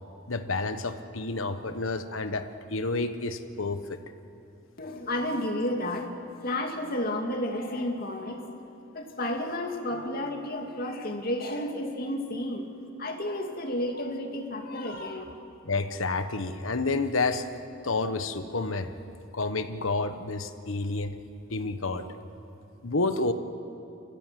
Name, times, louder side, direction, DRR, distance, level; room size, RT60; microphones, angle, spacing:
voice 1, 0.3-2.4 2.7-3.8 15.6-17.5 17.8-18.9 19.3-21.2 21.5-22.1 22.8-23.3, left 3 dB, 85° left, 9 dB, 1.3 m, -29 dB
voice 2, 4.8-6.1 6.4-8.5 8.9-12.7 13.0-15.2, left 1 dB, 45° left, 2 dB, 2.5 m, -31 dB
29.5 x 15.0 x 7.7 m, 2.7 s
head